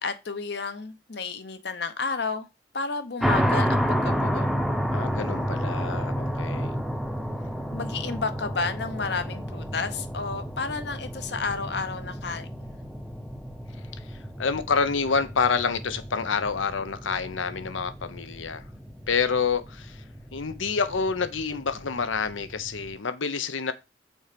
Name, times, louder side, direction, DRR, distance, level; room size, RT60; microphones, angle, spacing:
voice 1, 0.0-2.5 2.7-4.5 7.7-12.8, left 4 dB, 60° left, 0.9 m, -31 dB
sound 1, 3.2-22.9, equal, ahead, 0.6 m, -31 dB
voice 2, 4.9-6.8 14.4-18.6 19.1-20.0 20.3-23.7, left 5 dB, 85° left, 0.8 m, -28 dB
6.3 x 4.4 x 5.1 m
head